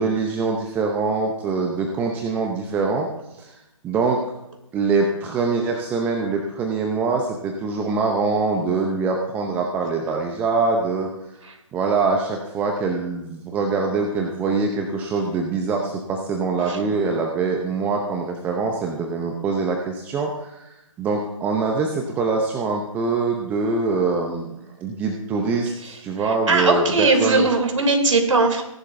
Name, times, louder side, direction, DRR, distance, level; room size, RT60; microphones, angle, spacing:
voice 1, 0.0-3.1 3.4-3.5 3.8-4.2 4.7-11.1 11.7-20.7 21.0-24.5 24.8-27.5, right 4 dB, 10° right, 2 dB, 0.7 m, -24 dB
voice 2, 25.8-28.6, right 3 dB, 65° right, 4 dB, 3.0 m, -20 dB
18.0 x 11.0 x 2.7 m, 0.88 s
figure-of-eight pair, 145°, 17 cm